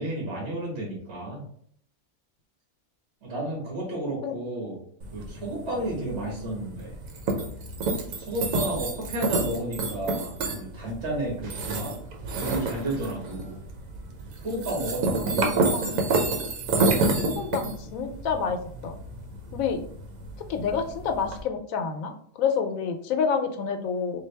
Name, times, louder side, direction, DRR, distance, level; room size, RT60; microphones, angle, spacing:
voice 1, 0.0-1.4 3.2-4.8 5.1-7.0 8.2-11.9 12.3-13.6 14.4-15.8, right 1 dB, 55° right, -4 dB, 1.7 m, -32 dB
sound 1, 5.0-21.4, right 3 dB, 85° right, 1.1 m, -29 dB
voice 2, 15.1-16.0 17.3-19.0 19.5-19.8 20.5-24.2, left 6 dB, 90° left, 6 dB, 1.0 m, -29 dB
3.9 x 2.3 x 3.2 m, 0.63 s
omnidirectional pair, 1.4 m